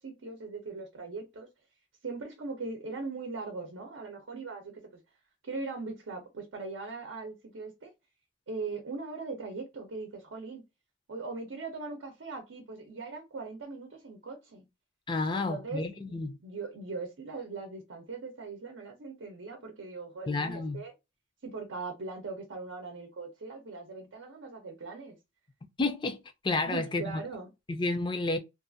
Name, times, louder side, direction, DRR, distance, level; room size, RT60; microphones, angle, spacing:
voice 1, 0.0-1.5 2.0-5.0 5.4-7.9 8.5-10.6 11.1-14.7 15.3-20.9 21.4-25.2 26.6-27.5, right 3 dB, 90° right, 0.7 m, -40 dB
voice 2, 15.1-16.4 20.3-20.8 25.8-27.2 27.7-28.4, left 3 dB, 25° left, 0.4 m, -31 dB
2.5 x 2.4 x 2.5 m
head